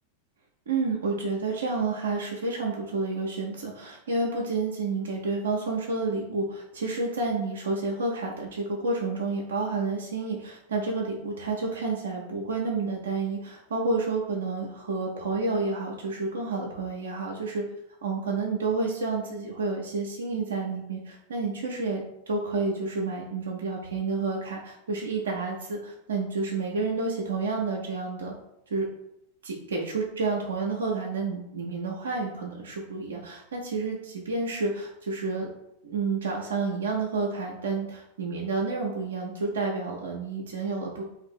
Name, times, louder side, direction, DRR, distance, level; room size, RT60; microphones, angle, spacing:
voice 1, 0.7-17.6 18.0-28.3 28.7-28.9 29.4-35.5 35.8-41.0, right 3 dB, 65° right, -1 dB, 0.5 m, -30 dB
2.6 x 2.6 x 4.2 m, 0.82 s
figure-of-eight pair, 90°, 0 cm